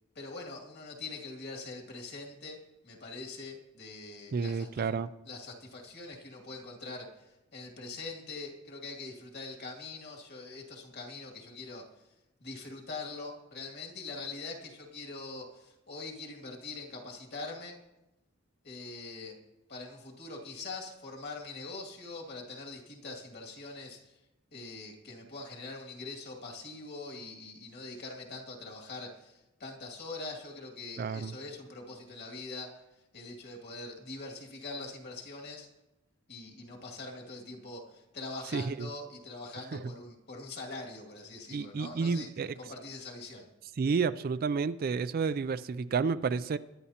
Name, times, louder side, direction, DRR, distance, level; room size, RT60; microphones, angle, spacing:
voice 1, 0.1-4.9 5.2-11.9 12.4-17.8 18.6-19.4 19.7-24.2 24.5-32.8 33.1-35.7 36.3-43.5, left 3 dB, 50° left, 2.3 m, -43 dB
voice 2, 4.3-5.1 31.0-31.3 38.5-38.9 39.7-39.8 41.5-42.5 43.8-46.6, right 5 dB, 45° right, 0.3 m, -30 dB
21.5 x 11.0 x 2.9 m
head